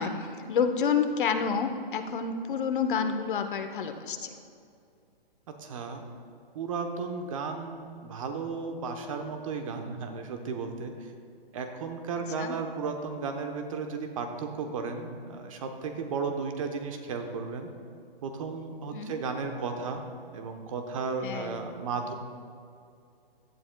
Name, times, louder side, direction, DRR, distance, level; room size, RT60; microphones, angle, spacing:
voice 1, 0.0-4.3 12.4-12.5 18.9-19.1 21.2-21.6, left 6 dB, 55° left, 8 dB, 0.9 m, -29 dB
voice 2, 5.6-6.0 6.5-10.9 11.5-17.7 18.2-20.0 20.3-22.1, right 4 dB, 35° right, 5 dB, 0.9 m, -34 dB
17.0 x 11.5 x 2.3 m, 2.5 s
hypercardioid pair, 160°, 30 cm